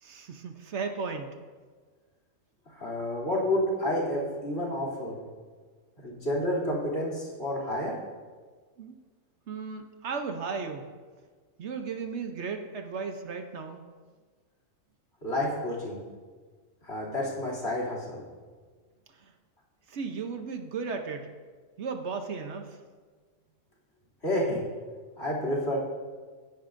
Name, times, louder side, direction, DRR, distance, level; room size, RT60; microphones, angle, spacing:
voice 1, 0.0-1.4 6.7-6.8 8.8-9.0 9.5-10.9 11.6-13.8 19.2-19.3 19.9-21.3 21.8-22.8, right 5 dB, 65° right, 5 dB, 1.1 m, -35 dB
voice 2, 2.8-5.2 6.0-7.9 15.2-16.0 16.8-18.2 24.2-24.6 25.2-25.8, left 1 dB, 55° left, -3 dB, 3.1 m, -29 dB
17.0 x 10.0 x 2.6 m, 1.5 s
omnidirectional pair, 1.3 m